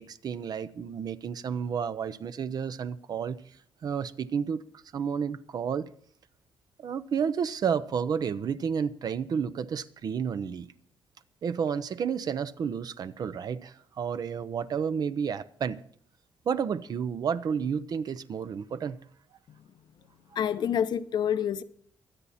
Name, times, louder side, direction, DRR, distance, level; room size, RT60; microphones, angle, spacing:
voice 1, 0.0-3.4 3.8-4.6 4.9-5.9 6.8-10.7 11.4-15.8 16.5-19.0, right 7 dB, 50° right, 0.7 m, -31 dB
voice 2, 20.4-21.6, left 9 dB, 60° left, 0.8 m, -27 dB
23.5 x 8.5 x 4.2 m
cardioid pair, 115°, 8 cm